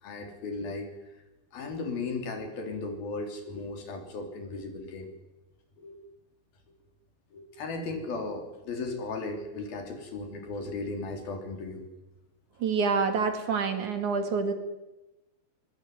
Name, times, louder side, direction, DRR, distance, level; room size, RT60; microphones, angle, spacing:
voice 1, 0.0-0.9 1.5-5.1 5.8-6.0 7.3-11.9, left 3 dB, 70° left, 5 dB, 5.4 m, -36 dB
voice 2, 12.6-14.5, right 5 dB, 55° right, 7 dB, 3.5 m, -27 dB
22.5 x 22.0 x 9.6 m, 1.0 s
omnidirectional pair, 4.4 m